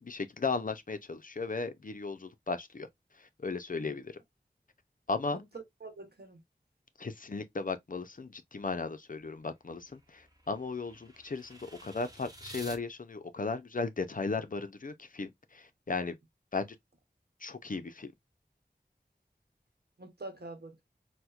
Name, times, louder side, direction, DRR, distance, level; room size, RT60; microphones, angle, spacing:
voice 1, 0.0-2.9 3.2-4.1 5.1-5.4 7.0-16.2 16.5-16.8 17.4-18.1, left 4 dB, 50° left, 0.5 m, -36 dB
voice 2, 5.3-6.4 20.0-20.8, right 3 dB, 70° right, 1.0 m, -46 dB
sound 1, 9.2-12.8, right 1 dB, 20° right, 1.0 m, -51 dB
4.2 x 2.1 x 2.3 m
wide cardioid pair, 40°, 17 cm